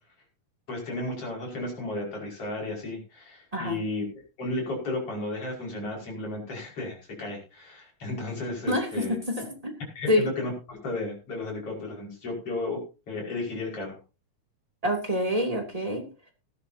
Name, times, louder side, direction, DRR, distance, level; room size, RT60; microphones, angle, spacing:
voice 1, 0.7-4.0 4.4-9.2 9.9-12.8 13.1-14.0, left 2 dB, 45° left, -1 dB, 6.4 m, -33 dB
voice 2, 8.7-9.7 10.1-10.3 14.8-16.3, left 1 dB, 10° right, 2 dB, 2.5 m, -27 dB
18.5 x 12.5 x 2.8 m, 0.32 s
omnidirectional pair, 3.5 m